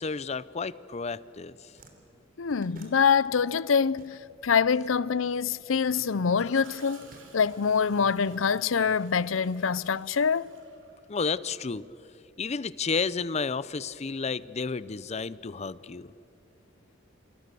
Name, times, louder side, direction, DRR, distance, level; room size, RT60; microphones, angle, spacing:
voice 1, 0.0-1.6 11.1-11.8 12.4-16.1, left 4 dB, 35° left, 0.6 m, -31 dB
sound 1, 1.6-4.6 4.9-6.0 6.7-8.7, right 2 dB, 45° right, 3.3 m, -56 dB
voice 2, 2.4-7.1 7.3-10.5, left 6 dB, 85° left, 0.6 m, -25 dB
Gurgling / Toilet flush, 5.8-11.6 13.6-13.8, right 3 dB, 70° right, 4.0 m, -55 dB
28.0 x 26.5 x 6.9 m
head